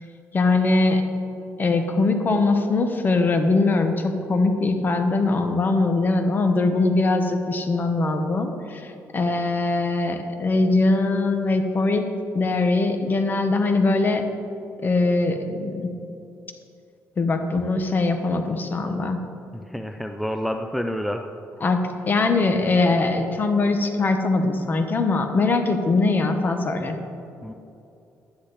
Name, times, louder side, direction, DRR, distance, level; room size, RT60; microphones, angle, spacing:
voice 1, 0.3-1.0 1.6-12.1 12.3-14.2 14.8-15.9 17.2-19.2 21.6-27.0, left 3 dB, 35° left, 6 dB, 1.2 m, -21 dB
voice 2, 19.5-21.3 27.4-27.5, equal, ahead, 6 dB, 0.5 m, -28 dB
12.0 x 10.0 x 4.1 m, 2.7 s
cardioid pair, 90°, 6 cm